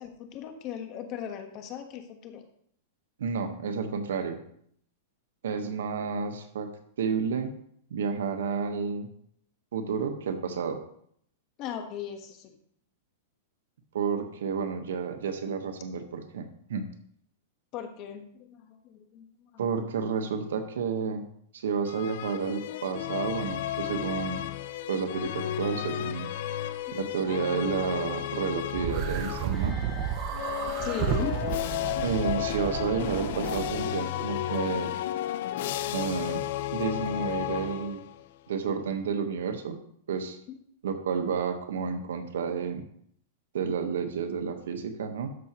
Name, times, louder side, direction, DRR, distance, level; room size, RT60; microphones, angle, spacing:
voice 1, 0.0-2.4 11.6-12.6 17.7-19.5 26.9-27.0 30.7-31.5 40.5-40.6, left 8 dB, 35° left, 6 dB, 1.2 m, -38 dB
voice 2, 3.2-4.4 5.4-6.7 7.0-7.6 7.9-9.1 9.7-10.8 13.9-16.8 19.6-21.3 21.5-24.4 24.9-26.3 26.9-29.8 32.0-34.9 35.9-36.4 36.7-38.0 38.5-39.8 40.1-40.4 40.8-42.8 43.5-45.3, right 6 dB, 85° right, 7 dB, 1.2 m, -31 dB
sound 1, 21.9-29.7 30.3-38.2, left 12 dB, 60° left, 0.5 m, -33 dB
sound 2, 28.7-33.9, right 8 dB, 40° right, 0.6 m, -32 dB
sound 3, 29.5-33.3, left 3 dB, 5° left, 2.9 m, -49 dB
12.5 x 6.0 x 3.0 m, 0.66 s
supercardioid pair, 150°, 0 cm